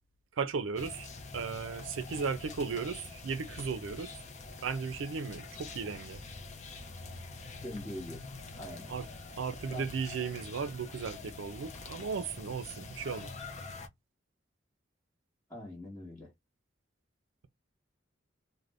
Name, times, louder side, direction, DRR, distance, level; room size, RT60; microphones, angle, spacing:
voice 1, 0.4-4.1 4.6-6.2 8.9-9.1 9.4-13.3, right 5 dB, 85° right, 0.4 m, -36 dB
sound 1, 0.8-13.9, left 3 dB, 40° left, 0.5 m, -45 dB
voice 2, 7.6-8.2 8.5-8.9 9.7-9.9 15.5-16.3, left 1 dB, 15° left, 1.0 m, -42 dB
2.5 x 2.1 x 3.2 m
head